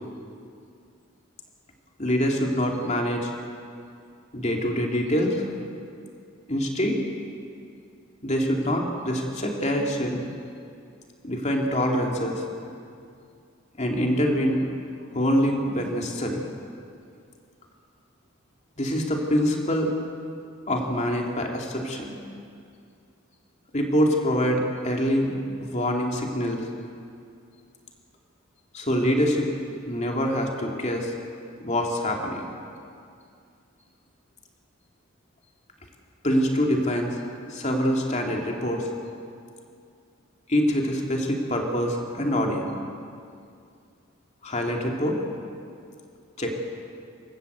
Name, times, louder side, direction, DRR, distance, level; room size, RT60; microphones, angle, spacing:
voice 1, 2.0-3.3 4.3-5.4 6.5-7.0 8.2-10.2 11.2-12.4 13.8-14.7 15.1-16.5 18.8-19.9 20.7-22.2 23.7-26.6 28.7-29.5 29.8-31.1 31.6-32.4 36.2-37.2 37.5-38.9 40.5-42.8 44.4-45.2 46.4-46.6, equal, 35° left, 1 dB, 2.7 m, -25 dB
26.5 x 13.5 x 8.1 m, 2.4 s
head